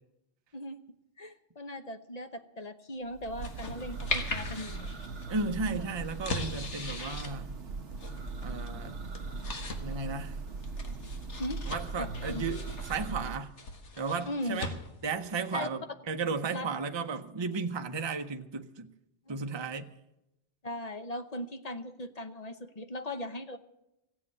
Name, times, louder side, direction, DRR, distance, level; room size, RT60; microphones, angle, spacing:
voice 1, 1.2-4.9 5.7-5.9 11.4-11.6 12.0-12.1 12.3-12.5 14.3-14.6 15.5-15.7 16.5-16.7 19.3-19.4 20.6-23.6, left 1 dB, 40° left, 0.9 m, -38 dB
Church bell, 3.1-13.4, right 4 dB, 85° right, 1.2 m, -39 dB
sound 1, 3.4-15.2, left 3 dB, 80° left, 1.8 m, -41 dB
voice 2, 5.3-7.6 8.4-9.0 9.8-10.4 11.7-13.6 14.0-14.7 15.0-18.9 19.3-19.9, right 4 dB, 25° right, 0.7 m, -34 dB
16.0 x 7.7 x 9.6 m
omnidirectional pair, 1.2 m